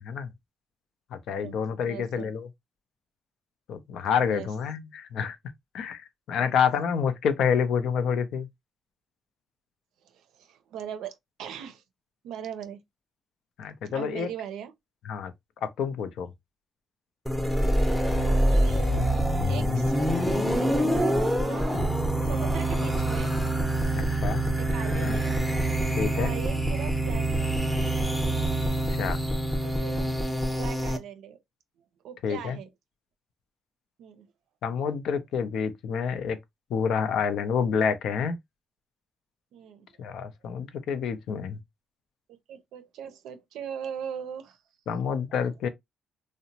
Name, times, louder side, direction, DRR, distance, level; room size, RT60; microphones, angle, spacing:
voice 1, 1.1-2.5 3.7-5.4 5.7-8.5 13.6-14.3 15.1-15.3 15.6-16.3 23.9-24.5 25.0-25.1 26.0-26.3 28.9-29.2 32.2-32.6 34.6-36.4 36.7-38.4 40.0-41.6 44.9-45.7, left 7 dB, 75° left, 0.5 m, -28 dB
voice 2, 1.8-2.3 4.2-4.5 6.4-6.5 10.0-11.8 12.2-12.8 13.9-14.7 17.8-19.9 20.8-21.9 22.2-23.3 24.6-25.4 26.1-27.5 29.6-31.4 32.0-32.7 34.0-34.3 39.5-39.9 42.5-44.6 45.0-45.4, right 8 dB, 85° right, 0.5 m, -40 dB
sound 1, 17.3-31.0, right 1 dB, 5° left, 0.6 m, -25 dB
2.8 x 2.0 x 2.6 m
cardioid pair, 90°, 0 cm